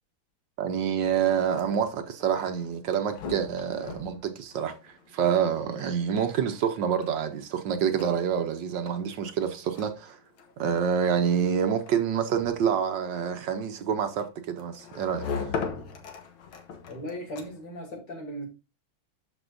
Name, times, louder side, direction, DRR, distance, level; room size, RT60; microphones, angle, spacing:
voice 1, 0.6-10.2 10.6-15.5, right 8 dB, 70° right, 1.4 m, -27 dB
sound 1, 1.3-17.8, left 5 dB, 85° left, 2.1 m, -41 dB
voice 2, 16.9-18.4, equal, 60° left, 3.4 m, -37 dB
12.5 x 5.4 x 2.6 m
omnidirectional pair, 2.2 m